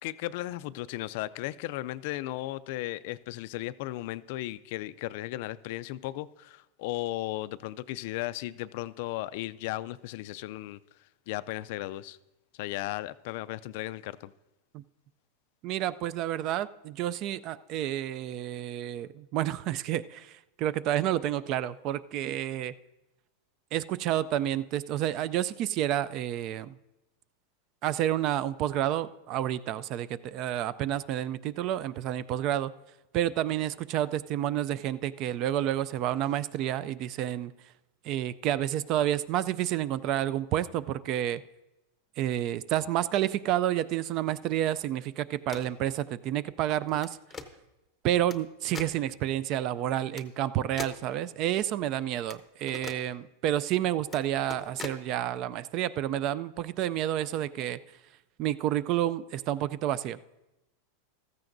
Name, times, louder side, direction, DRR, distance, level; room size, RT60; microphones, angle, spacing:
voice 1, 0.0-10.8 11.3-12.2 12.6-14.3, left 16 dB, 55° left, 16 dB, 0.3 m, -35 dB
voice 2, 15.6-22.7 23.7-26.7 27.8-32.7 33.1-37.5 38.0-41.4 42.2-47.2 48.0-57.8 58.4-60.2, right 12 dB, 40° right, 17 dB, 0.3 m, -30 dB
sound 1, 45.3-45.8 46.9-47.5 48.3-48.4 48.7-49.0 50.1-50.2 50.8-51.0 52.3-52.4 52.7-53.0 54.0-54.2 54.5-55.0, left 5 dB, 15° left, 0.7 m, -41 dB
15.0 x 14.0 x 2.6 m, 0.97 s
supercardioid pair, 155°, 0 cm